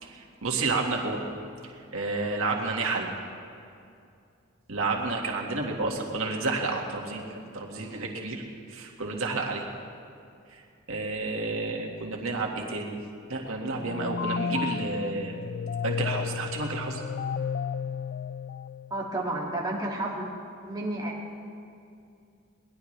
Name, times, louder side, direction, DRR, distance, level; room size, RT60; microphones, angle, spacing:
voice 1, 0.0-1.2 1.6-3.1 4.7-8.4 8.7-9.6 10.5-10.6 10.9-13.0 13.3-15.3 15.8-17.0, right 3 dB, 85° right, 0 dB, 1.9 m, -30 dB
sound 1, 13.7-19.2, left 6 dB, 55° left, 0.3 m, -33 dB
voice 2, 18.9-20.3 20.6-21.1, right 1 dB, 20° right, -4 dB, 2.4 m, -31 dB
22.5 x 19.0 x 3.3 m, 2.4 s
head